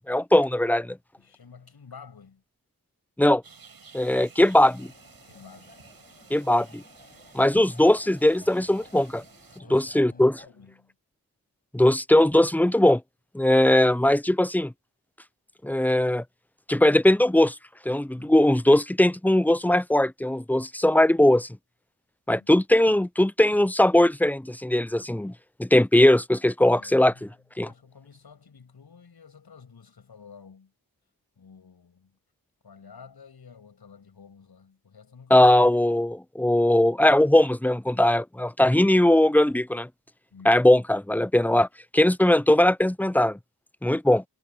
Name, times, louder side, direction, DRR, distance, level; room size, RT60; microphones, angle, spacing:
voice 1, 0.0-1.0 3.2-3.4 3.9-4.9 6.3-6.8 7.3-9.2 9.7-10.4 11.7-13.0 13.3-14.7 15.6-16.2 16.7-17.5 17.9-21.5 22.3-25.3 25.6-27.3 27.6-27.7 35.3-39.9 40.4-41.7 41.9-43.4 43.8-44.2, left 1 dB, 5° left, 0.6 m, -20 dB
voice 2, 1.2-2.4 5.2-5.8 9.6-10.9 18.1-18.4 22.3-22.5 26.7-27.3 27.6-30.7 31.4-32.2 32.6-35.5 40.3-40.6, left 6 dB, 90° left, 7.0 m, -50 dB
sound 1, 3.4-9.6, right 5 dB, 70° right, 7.8 m, -53 dB
sound 2, 4.6-10.5, left 2 dB, 25° left, 6.3 m, -54 dB
wide cardioid pair, 65°, 37 cm